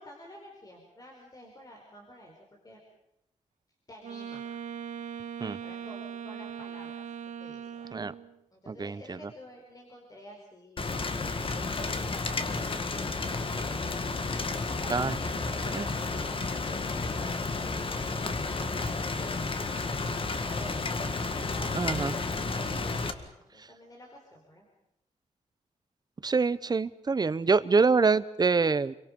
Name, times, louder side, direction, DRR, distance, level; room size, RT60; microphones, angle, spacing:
voice 1, 0.0-2.4 2.6-2.8 3.9-4.4 5.6-7.9 8.5-10.9 11.3-13.5 14.6-19.8 20.4-21.1 21.4-22.5 23.0-24.7, equal, 30° left, 0 dB, 4.8 m, -50 dB
Wind instrument woodwind instrument, 4.0-8.4, right 7 dB, 75° right, 1.5 m, -40 dB
voice 2, 8.7-9.2 14.9-15.2 15.7-15.9 21.7-22.1 26.2-28.9, right 4 dB, 30° right, 15 dB, 0.9 m, -25 dB
Rain, 10.8-23.1, left 3 dB, 45° left, 1.9 m, -32 dB
29.5 x 23.5 x 5.4 m, 0.84 s
wide cardioid pair, 140°, 13 cm